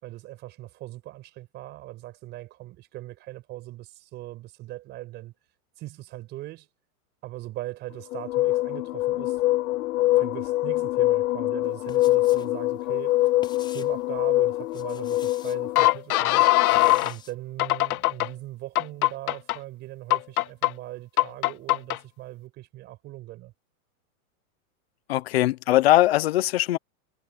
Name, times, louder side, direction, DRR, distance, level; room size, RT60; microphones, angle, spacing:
voice 1, 0.0-5.3 5.8-6.7 7.2-9.4 10.2-13.2 13.7-16.5 17.0-23.5, right 16 dB, 25° right, 5.4 m, -40 dB
sound 1, 8.1-17.1 17.6-18.3 18.8-19.6 20.1-20.7 21.2-22.0, left 17 dB, 75° left, 0.6 m, -23 dB
sound 2, 11.6-12.5 12.8-14.0 14.6-15.6 16.1-17.3, left 6 dB, 10° left, 4.7 m, -47 dB
voice 2, 25.1-26.8, left 15 dB, 45° left, 0.9 m, -20 dB
supercardioid pair, 180°, 44 cm